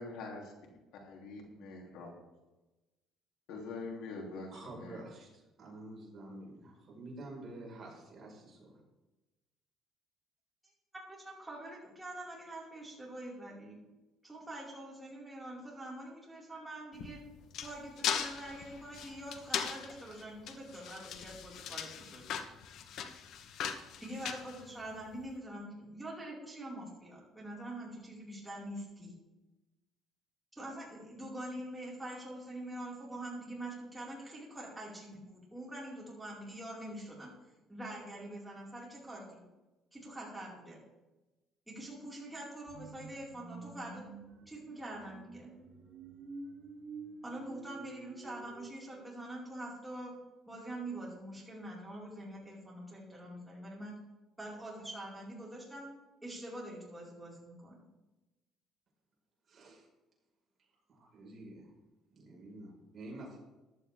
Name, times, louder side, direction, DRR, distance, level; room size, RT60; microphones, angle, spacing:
voice 1, 0.0-0.4 1.0-2.1 3.5-5.0, left 3 dB, 80° left, 1 dB, 3.0 m, -44 dB
voice 2, 4.5-8.8 59.5-59.9 60.6-61.7 62.1-63.4, right 2 dB, 35° right, -2 dB, 5.1 m, -49 dB
voice 3, 11.1-13.8 14.2-17.2 17.6-22.4 24.0-29.1 30.5-37.3 37.7-39.4 39.9-40.8 41.7-44.0 44.5-45.5 47.2-50.2 50.5-53.9 54.4-55.9 56.2-57.9, right 1 dB, 5° right, -5 dB, 5.1 m, -45 dB
sound 1, 16.9-25.2, left 8 dB, 65° left, 1.2 m, -39 dB
sound 2, 42.7-48.7, right 3 dB, 60° right, 3.3 m, -49 dB
15.0 x 11.5 x 3.6 m, 1.1 s
cardioid pair, 125°, 0 cm